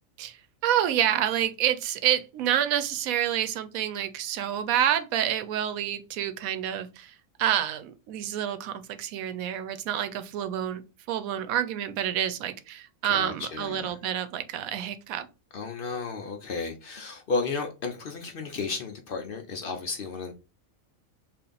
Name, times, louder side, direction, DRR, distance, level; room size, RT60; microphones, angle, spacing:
voice 1, 0.2-10.8 11.1-15.3, right 10 dB, 90° right, 1.0 m, -28 dB
voice 2, 13.0-14.0 15.5-20.3, left 4 dB, 60° left, 0.6 m, -33 dB
3.4 x 2.5 x 3.8 m
omnidirectional pair, 1.4 m